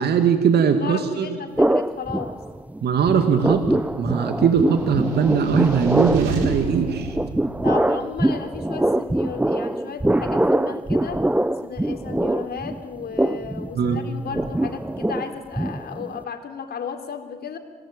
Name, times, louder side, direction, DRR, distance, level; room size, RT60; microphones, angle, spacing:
voice 1, 0.0-1.3 2.8-7.2 13.8-14.0, right 6 dB, 55° right, 7 dB, 2.3 m, -20 dB
voice 2, 0.8-2.4 7.6-11.3 11.6-17.6, left 6 dB, 50° left, 5 dB, 3.9 m, -34 dB
sound 1, 1.6-2.8 3.1-16.2, right 1 dB, 5° right, 1.0 m, -23 dB
sound 2, 4.7-8.1, right 3 dB, 75° right, 4.9 m, -33 dB
27.5 x 18.5 x 8.9 m, 1.4 s
hypercardioid pair, 50°, 20 cm